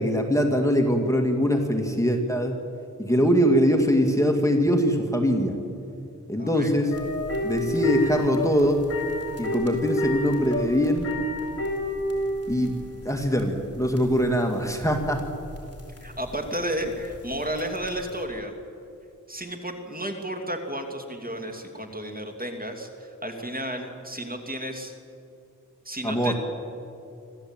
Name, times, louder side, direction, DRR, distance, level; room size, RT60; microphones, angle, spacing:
voice 1, 0.0-2.6 3.0-5.6 6.3-6.9 7.4-8.9 9.4-11.1 12.5-12.8 13.1-15.2 26.0-26.3, equal, 10° left, 2 dB, 2.2 m, -22 dB
voice 2, 6.4-6.8 16.0-18.5 19.3-24.9 25.8-26.3, right 1 dB, 25° right, 3 dB, 2.7 m, -32 dB
sound 1, 6.9-18.2, equal, 50° left, 4.4 m, -32 dB
25.5 x 14.5 x 9.0 m, 2.6 s
wide cardioid pair, 75°, 32 cm